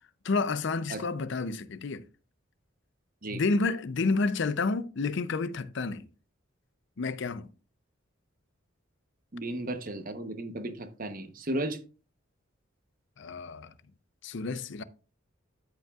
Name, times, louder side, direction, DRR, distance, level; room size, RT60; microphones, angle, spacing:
voice 1, 0.2-2.0 3.3-6.1 7.0-7.5 13.2-13.7 14.2-14.8, left 3 dB, 55° left, 0.5 m, -30 dB
voice 2, 9.3-11.8, right 1 dB, 40° right, 0.9 m, -34 dB
13.5 x 5.3 x 2.4 m
head